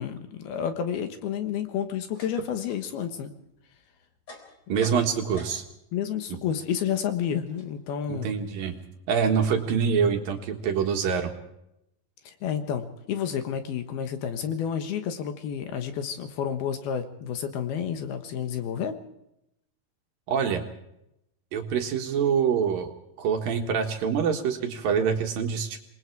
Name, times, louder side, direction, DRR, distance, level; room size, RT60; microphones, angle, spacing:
voice 1, 0.0-3.3 5.9-8.3 12.3-19.0, left 8 dB, 70° left, 8 dB, 3.0 m, -30 dB
sound 1, 1.8-5.9 6.2-9.1, left 2 dB, 30° left, 4.4 m, -50 dB
voice 2, 4.7-5.6 8.1-8.8 9.1-11.3 20.3-20.6 21.5-22.9 23.2-25.8, right 7 dB, 60° right, 4 dB, 2.9 m, -25 dB
27.5 x 20.5 x 4.7 m, 0.83 s
omnidirectional pair, 5.0 m